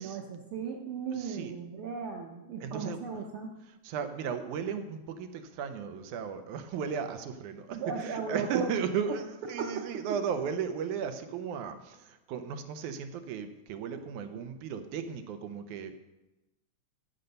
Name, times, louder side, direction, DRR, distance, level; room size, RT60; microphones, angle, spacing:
voice 1, 0.0-3.5 7.7-8.7 9.6-9.9, right 6 dB, 60° right, 0 dB, 1.5 m, -36 dB
voice 2, 1.1-1.5 2.6-3.0 3.8-16.0, right 7 dB, 85° right, 8 dB, 2.3 m, -35 dB
14.5 x 6.7 x 5.3 m, 1.0 s
omnidirectional pair, 3.4 m